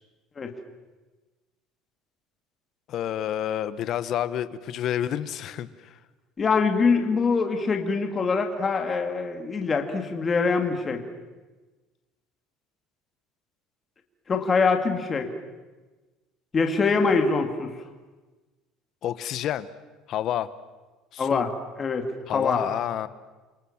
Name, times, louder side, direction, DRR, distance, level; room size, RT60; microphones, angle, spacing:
voice 1, 2.9-6.0 19.0-19.7 20.1-20.5 21.1-21.5 22.3-23.1, left 11 dB, 40° left, 14 dB, 1.3 m, -29 dB
voice 2, 6.4-11.0 14.3-15.3 16.5-17.7 21.2-21.5 21.8-22.1 22.3-22.6, left 4 dB, 20° left, 4 dB, 2.4 m, -24 dB
29.5 x 25.5 x 7.3 m, 1.2 s
cardioid pair, 175°, 0 cm